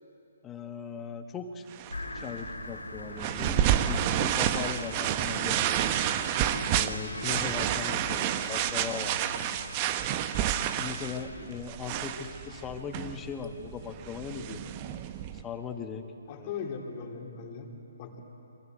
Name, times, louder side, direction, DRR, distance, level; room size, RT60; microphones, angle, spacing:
voice 1, 0.4-1.7 2.1-6.0 6.7-9.2 10.8-14.6 15.3-16.1 16.4-16.5, left 6 dB, 15° left, 6 dB, 1.7 m, -39 dB
sound 1, 1.7-15.4, right 10 dB, 30° right, 1.1 m, -30 dB
sound 2, 1.9-9.8, left 2 dB, 80° left, 1.5 m, -43 dB
voice 2, 16.3-17.7 18.0-18.2, left 6 dB, 30° left, 0 dB, 3.7 m, -38 dB
27.0 x 24.5 x 8.0 m, 2.8 s
figure-of-eight pair, 135°, 0 cm